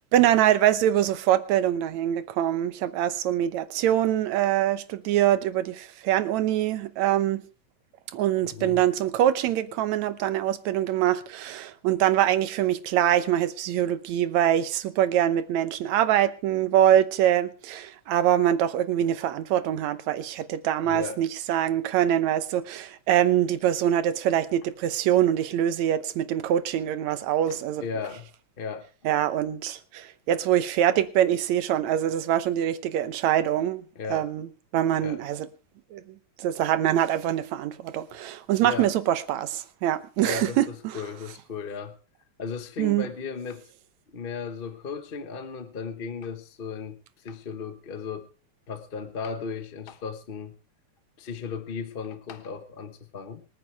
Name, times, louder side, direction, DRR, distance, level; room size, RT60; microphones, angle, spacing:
voice 1, 0.1-7.4 8.1-27.8 29.1-33.8 34.1-34.5 34.7-35.5 35.9-36.0 36.4-41.0 42.8-43.1, right 11 dB, 75° right, 2.2 m, -24 dB
voice 2, 8.4-8.8 20.8-21.2 27.5-28.3 28.6-28.9 33.9-34.3 35.0-35.2 38.6-38.9 40.2-42.0 42.4-43.7 44.1-48.3 48.7-50.6 51.2-53.5, left 5 dB, 70° left, 0.5 m, -36 dB
25.5 x 9.6 x 3.4 m
omnidirectional pair, 3.4 m